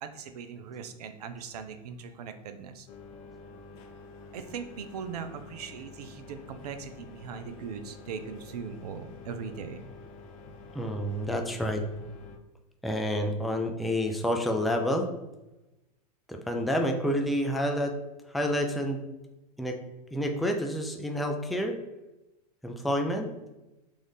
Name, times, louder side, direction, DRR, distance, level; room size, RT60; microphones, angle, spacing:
voice 1, 0.0-2.9 4.3-9.9, right 6 dB, 70° right, 9 dB, 0.5 m, -40 dB
sound 1, 2.9-12.4, left 3 dB, 55° left, 0.6 m, -48 dB
voice 2, 10.7-11.8 12.8-15.1 16.3-17.9 18.3-19.0 19.6-19.8 20.1-21.8 22.6-23.3, equal, ahead, 3 dB, 0.4 m, -28 dB
3.7 x 2.5 x 3.4 m, 0.99 s
hypercardioid pair, 95°, 21 cm